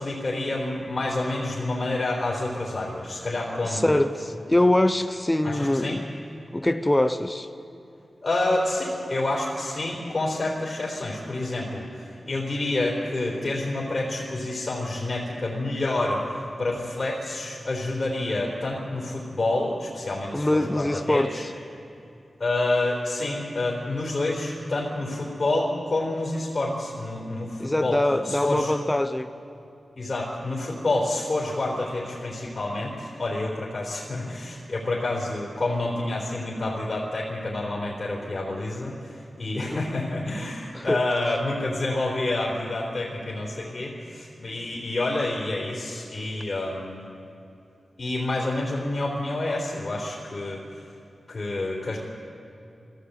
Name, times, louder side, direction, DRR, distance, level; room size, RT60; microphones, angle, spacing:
voice 1, 0.0-4.0 5.4-6.0 8.2-21.4 22.4-28.0 28.2-28.7 30.0-47.0 48.0-50.6 51.3-52.0, left 2 dB, 40° left, -4 dB, 3.9 m, -28 dB
voice 2, 3.6-6.0 6.5-7.5 20.3-21.5 27.6-29.3 39.7-40.0 40.7-41.0, left 1 dB, 15° left, 9 dB, 0.7 m, -23 dB
22.0 x 14.5 x 8.2 m, 2.8 s
wide cardioid pair, 95°, 0 cm